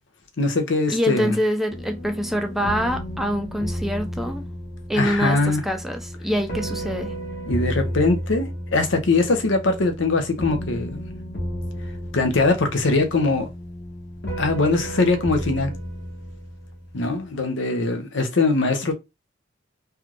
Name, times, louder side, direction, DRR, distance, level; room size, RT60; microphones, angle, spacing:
voice 1, 0.4-1.4 4.9-5.6 7.5-11.0 12.1-13.5 14.4-15.7 16.9-18.9, left 3 dB, 75° left, 0.8 m, -21 dB
voice 2, 0.9-4.5 4.9-7.1, equal, ahead, 0.4 m, -25 dB
sound 1, 1.7-17.1, equal, 60° left, 1.3 m, -32 dB
3.4 x 2.4 x 3.0 m
head